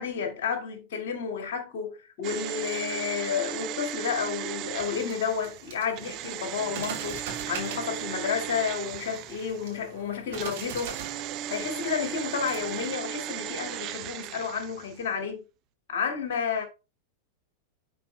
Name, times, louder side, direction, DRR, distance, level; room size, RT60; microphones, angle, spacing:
voice 1, 0.0-10.9 11.5-15.4 15.9-16.6, left 6 dB, 55° left, 2.1 m, -31 dB
sound 1, 2.2-9.8 10.3-15.0 15.3-15.4, right 12 dB, 40° right, 0.6 m, -36 dB
sound 2, 4.7-12.9, right 6 dB, 55° right, 3.0 m, -43 dB
10.5 x 4.7 x 2.2 m
figure-of-eight pair, 90°, 0 cm